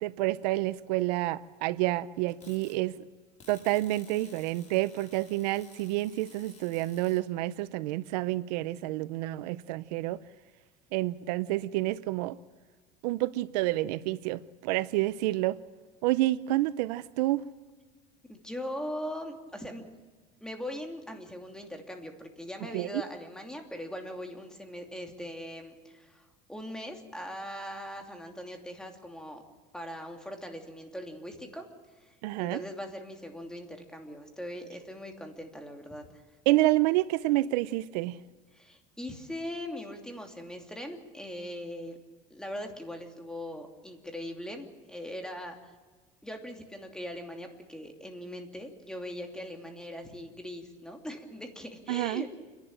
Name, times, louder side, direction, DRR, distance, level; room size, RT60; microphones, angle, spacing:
voice 1, 0.0-3.1 3.5-10.2 10.9-12.4 13.0-15.6 16.0-17.4 22.7-23.0 32.2-32.6 36.5-38.2 51.9-52.2, right 17 dB, 90° right, 0.7 m, -29 dB
sound 1, 2.3-2.7 3.4-7.2, left 5 dB, 35° left, 5.4 m, -55 dB
voice 2, 18.3-19.9 20.4-29.4 29.7-36.2 38.5-42.0 42.3-45.7 46.2-52.3, equal, 5° left, 2.8 m, -40 dB
29.0 x 11.5 x 8.9 m
supercardioid pair, 120°, 21 cm